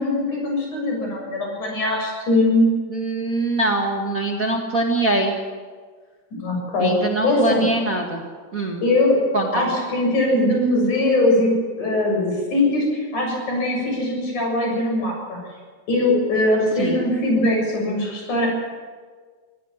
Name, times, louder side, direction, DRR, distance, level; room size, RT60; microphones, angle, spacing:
voice 1, 0.0-2.7 6.4-7.7 8.8-9.2 9.5-15.4 15.9-18.5, left 1 dB, 85° left, 0 dB, 8.6 m, -21 dB
voice 2, 2.9-5.3 6.8-8.2 8.5-8.8 9.3-9.7 16.8-17.0, right 2 dB, 30° right, 0 dB, 1.9 m, -23 dB
24.5 x 16.5 x 7.3 m, 1.5 s
omnidirectional pair, 3.4 m